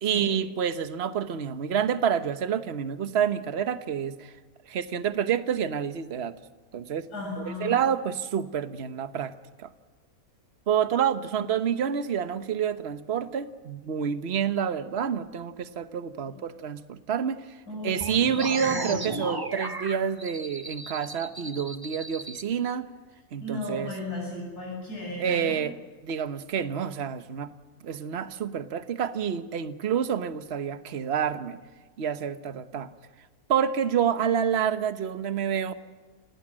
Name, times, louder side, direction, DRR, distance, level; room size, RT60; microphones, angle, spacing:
voice 1, 0.0-4.3 4.7-6.4 6.7-7.1 7.4-9.3 9.6-9.7 10.7-17.4 17.8-22.9 23.3-23.9 25.2-25.7 26.0-27.5 27.8-31.6 32.0-32.9 33.5-35.7, right 8 dB, 45° right, 10 dB, 1.2 m, -28 dB
voice 2, 7.1-7.8 11.3-11.4 17.7-19.1 23.4-25.6, left 1 dB, 85° left, -3 dB, 8.1 m, -36 dB
sound 1, 18.0-22.4, right 2 dB, 15° right, 1.2 m, -35 dB
29.0 x 18.5 x 7.6 m, 1.3 s
omnidirectional pair, 1.6 m